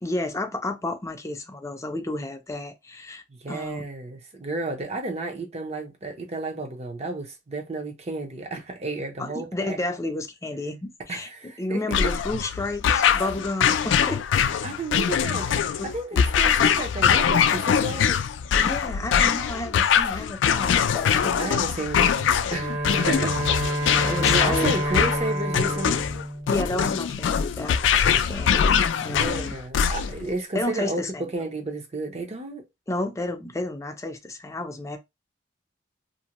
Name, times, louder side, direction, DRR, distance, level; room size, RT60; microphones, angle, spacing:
voice 1, 0.0-3.9 9.2-11.3 11.6-14.2 15.8-15.9 18.6-21.6 22.9-23.3 24.0-24.8 26.5-29.6 30.5-31.3 32.9-35.0, left 2 dB, 15° left, 0.5 m, -31 dB
voice 2, 3.3-9.8 11.1-12.0 14.6-18.2 21.4-23.4 23.8-26.1 29.1-32.7, right 2 dB, 35° right, 0.7 m, -32 dB
sound 1, 11.9-30.3, left 8 dB, 75° left, 0.3 m, -23 dB
Bowed string instrument, 22.5-27.5, right 1 dB, 55° right, 1.5 m, -29 dB
2.6 x 2.1 x 2.9 m
head